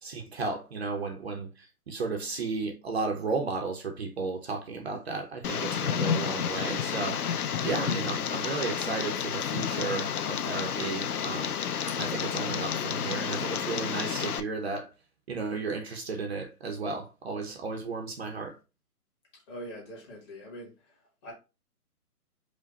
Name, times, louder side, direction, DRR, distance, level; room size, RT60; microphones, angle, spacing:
voice 1, 0.0-7.2 7.6-11.5 11.9-14.9 15.3-18.6, right 4 dB, 45° right, 0.7 m, -34 dB
Tick, 5.4-14.4, left 8 dB, 70° left, 0.6 m, -31 dB
voice 2, 19.3-21.3, equal, 15° left, 1.2 m, -44 dB
5.1 x 2.2 x 4.0 m
hypercardioid pair, 150°, 47 cm